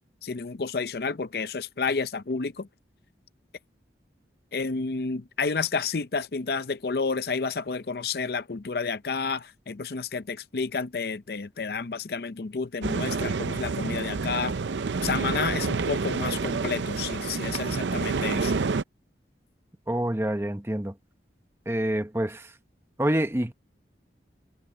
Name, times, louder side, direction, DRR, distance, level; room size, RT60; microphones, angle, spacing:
voice 1, 0.2-2.7 4.5-14.5 15.0-18.5, left 4 dB, 60° left, 0.6 m, -30 dB
sound 1, 12.8-18.8, right 4 dB, 85° right, 0.6 m, -28 dB
voice 2, 19.9-21.0 21.7-22.5 23.0-23.5, right 1 dB, 15° right, 0.9 m, -27 dB
head